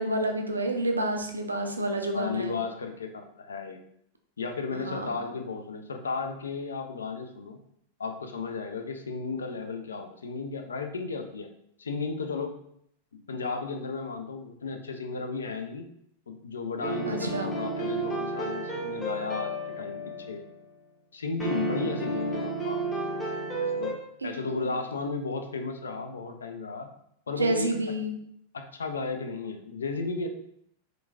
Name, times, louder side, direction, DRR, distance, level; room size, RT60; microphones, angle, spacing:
voice 1, 0.0-2.5 4.7-5.1 17.1-17.5 21.7-21.9 24.2-24.8 27.4-28.1, right 1 dB, 80° right, 4 dB, 0.3 m, -29 dB
voice 2, 2.1-3.8 4.4-7.6 8.0-11.5 11.8-12.6 13.1-15.9 16.3-20.4 21.1-23.9 24.2-26.9 27.3-27.7 28.5-30.3, left 4 dB, 70° left, 6 dB, 0.3 m, -34 dB
sound 1, 16.8-20.5 21.4-23.9, right 2 dB, 15° left, 0.7 m, -32 dB
2.9 x 2.5 x 2.3 m, 0.70 s
figure-of-eight pair, 90°, 0 cm